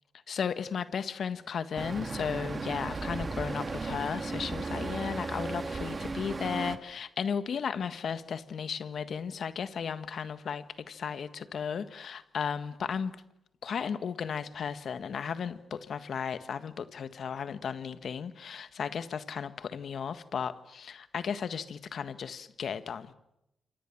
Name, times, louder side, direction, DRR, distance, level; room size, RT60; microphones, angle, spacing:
voice 1, 0.3-13.1 13.6-23.1, left 7 dB, 65° left, 12 dB, 1.6 m, -35 dB
Traffic noise roadway noise, 1.8-6.8, right 3 dB, 40° right, 2.4 m, -35 dB
28.0 x 23.5 x 7.3 m, 0.87 s
supercardioid pair, 55°, 0 cm